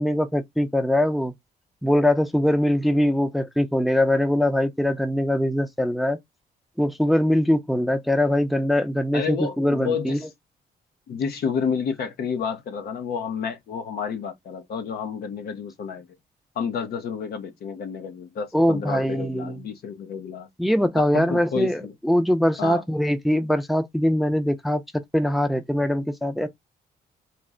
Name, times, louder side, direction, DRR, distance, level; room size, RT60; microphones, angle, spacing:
voice 1, 0.0-1.3 1.8-6.2 6.8-10.2 18.5-19.6 20.6-24.8 25.1-26.5, left 1 dB, ahead, 0.5 m, -22 dB
voice 2, 9.1-10.2 11.1-16.1 16.5-20.5 21.0-21.9 22.6-22.8, left 6 dB, 75° left, 0.9 m, -30 dB
4.3 x 2.1 x 3.7 m
cardioid pair, 90°, 17 cm